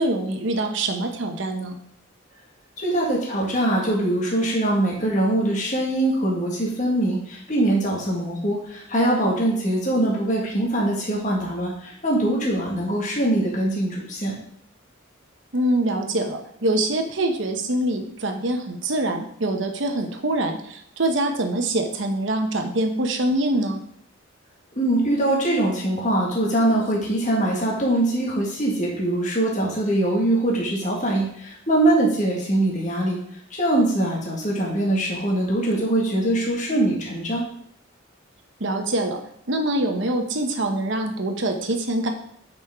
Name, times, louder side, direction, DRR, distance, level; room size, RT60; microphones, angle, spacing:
voice 1, 0.0-1.8 15.5-23.8 38.6-39.2 39.5-42.1, right 1 dB, 65° right, 4 dB, 1.0 m, -24 dB
voice 2, 2.8-14.4 24.8-33.2 33.5-37.5, right 1 dB, 40° left, -3 dB, 1.7 m, -22 dB
8.6 x 5.4 x 3.6 m, 0.68 s
head